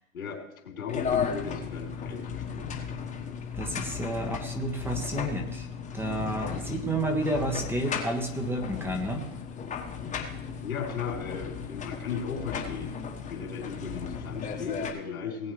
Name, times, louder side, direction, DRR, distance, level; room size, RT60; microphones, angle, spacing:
voice 1, 0.1-2.8 6.5-6.7 10.6-13.0 13.3-15.5, left 6 dB, 85° left, -4 dB, 3.5 m, -36 dB
sound 1, 0.9-14.9, left 6 dB, 15° left, 1.3 m, -35 dB
voice 2, 3.5-5.7 5.9-9.3, right 1 dB, 5° right, 5 dB, 1.1 m, -31 dB
19.0 x 8.4 x 3.3 m, 0.86 s
hypercardioid pair, 130°, 41 cm